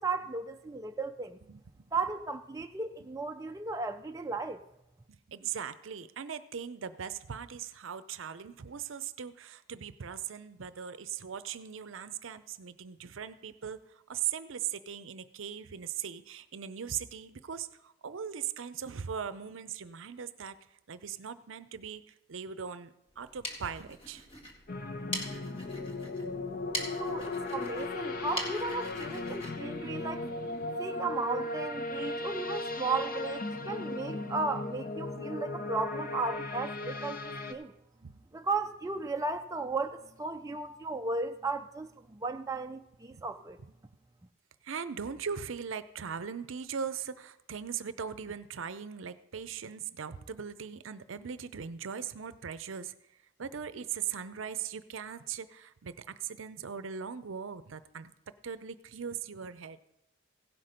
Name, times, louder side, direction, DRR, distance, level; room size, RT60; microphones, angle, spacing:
voice 1, 0.0-1.4 1.9-4.6 27.0-30.3 30.8-37.7 38.3-43.6, right 3 dB, 15° right, 0.3 m, -35 dB
voice 2, 5.1-20.6 20.9-22.0 22.3-24.3 38.0-38.2 43.1-43.2 44.6-52.9 53.4-58.1 58.4-59.8, right 7 dB, 70° right, 0.6 m, -39 dB
sound 1, 23.1-30.6, equal, 25° left, 1.7 m, -43 dB
sound 2, 24.7-37.5, left 2 dB, 45° left, 0.7 m, -37 dB
16.5 x 5.9 x 5.1 m
head